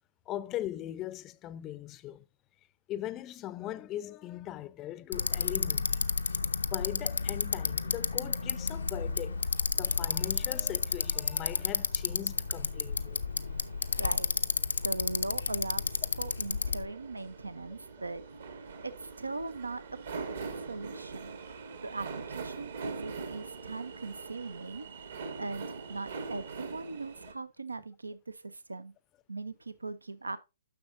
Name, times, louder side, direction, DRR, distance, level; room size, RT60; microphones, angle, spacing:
voice 1, 0.3-2.2 2.9-6.1 6.6-9.4 9.8-13.2, left 13 dB, 25° left, 0.5 m, -40 dB
Bicycle, 5.1-16.9, left 4 dB, 75° left, 0.6 m, -31 dB
sound 1, 7.7-27.3, right 4 dB, 60° right, 1.6 m, -45 dB
voice 2, 13.9-14.3 14.8-18.2 18.5-19.8 20.1-20.3 20.5-21.4 21.8-28.9 29.3-30.4, right 3 dB, 80° right, 0.5 m, -40 dB
10.5 x 6.3 x 2.6 m
figure-of-eight pair, 125°, 0 cm